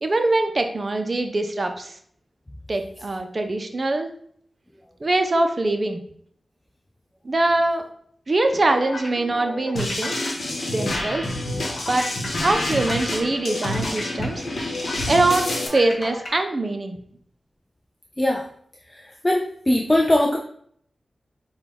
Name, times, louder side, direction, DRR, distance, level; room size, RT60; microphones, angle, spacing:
voice 1, 0.0-2.0 2.7-4.1 5.0-6.0 7.2-7.8 8.3-10.3 10.7-11.3 11.9-12.1 12.4-17.0, right 2 dB, 40° right, 6 dB, 0.5 m, -23 dB
sound 1, 8.5-16.4, left 2 dB, 50° left, 1.3 m, -34 dB
sound 2, 9.8-15.7, left 1 dB, 65° left, 1.0 m, -28 dB
voice 2, 19.2-20.4, left 1 dB, 15° left, 0 dB, 0.4 m, -20 dB
5.8 x 2.3 x 3.5 m, 0.63 s
wide cardioid pair, 95°, 0 cm